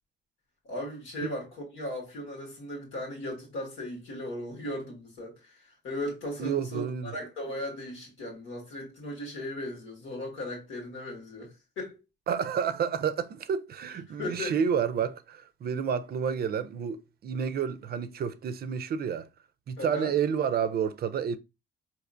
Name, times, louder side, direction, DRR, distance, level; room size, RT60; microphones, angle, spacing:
voice 1, 0.6-12.0 14.1-14.6 19.8-20.1, left 1 dB, 90° left, 1.6 m, -37 dB
voice 2, 6.4-7.1 12.3-19.3 19.7-21.4, right 7 dB, 50° right, 0.4 m, -30 dB
4.3 x 2.8 x 2.5 m
cardioid pair, 90°, 20 cm